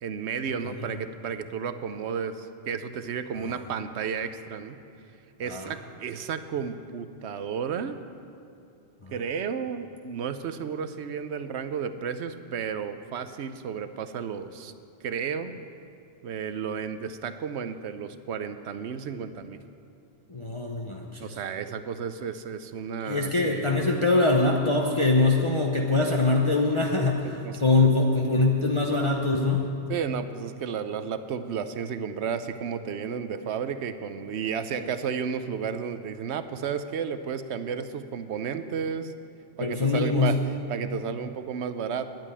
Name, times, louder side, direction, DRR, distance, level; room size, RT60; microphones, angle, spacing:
voice 1, 0.0-4.8 5.4-8.0 9.1-14.7 15.0-15.6 16.2-19.6 21.2-23.8 27.4-27.6 29.9-39.1 39.6-40.4 40.7-42.1, right 7 dB, 75° right, 11 dB, 1.0 m, -32 dB
voice 2, 20.3-21.2 23.0-27.3 27.6-29.7 39.6-40.4, left 3 dB, 30° left, -1 dB, 0.9 m, -23 dB
10.5 x 9.0 x 9.7 m, 2.6 s
omnidirectional pair, 1.2 m